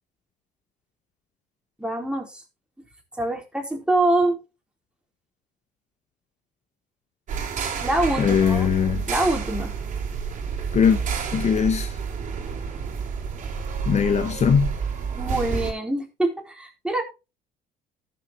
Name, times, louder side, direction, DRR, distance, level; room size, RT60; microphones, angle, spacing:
voice 1, 1.8-2.4 3.2-4.4 7.8-8.7 9.1-9.7 15.1-17.0, right 2 dB, 5° right, 3.6 m, -24 dB
sound 1, 7.3-15.7, right 6 dB, 45° right, 2.7 m, -29 dB
voice 2, 8.2-9.0 10.7-11.0 11.3-12.0 13.9-14.7, left 7 dB, 40° left, 0.9 m, -20 dB
14.0 x 6.9 x 3.0 m
supercardioid pair, 95°, 18 cm